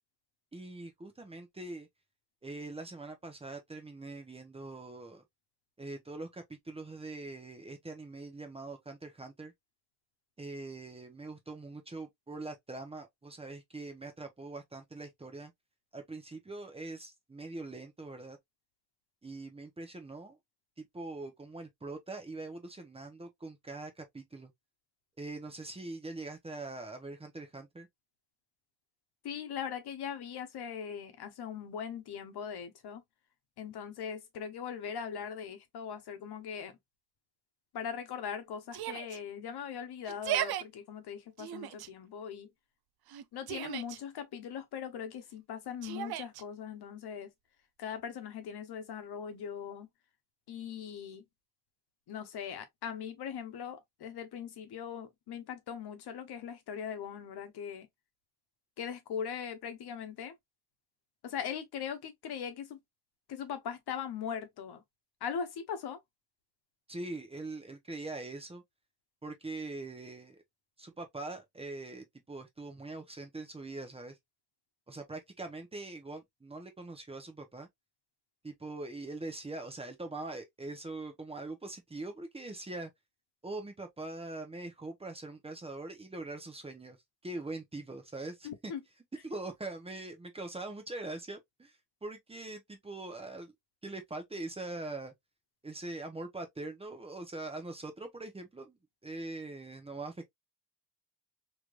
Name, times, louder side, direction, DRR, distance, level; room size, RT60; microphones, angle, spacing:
voice 1, 0.5-1.9 2.4-5.2 5.8-9.5 10.4-15.5 15.9-18.4 19.2-20.4 20.8-24.5 25.2-27.9 66.9-68.6 69.2-70.4 70.8-74.2 74.9-77.7 78.4-82.9 83.4-87.0 87.2-88.7 89.2-93.5 93.8-95.1 95.6-98.8 99.0-100.3, right 2 dB, 15° right, 0.8 m, -42 dB
voice 2, 29.2-33.0 33.6-36.7 37.7-42.5 43.3-47.3 47.8-49.9 50.5-51.2 52.1-57.9 58.8-60.3 61.2-62.8 63.3-64.8 65.2-66.0 88.4-88.8, left 7 dB, 80° left, 1.0 m, -40 dB
Yell, 38.7-39.2 40.1-40.6 41.4-41.9 43.1-44.0 45.8-46.4, right 11 dB, 75° right, 0.5 m, -36 dB
3.3 x 3.1 x 2.4 m
wide cardioid pair, 155°, 38 cm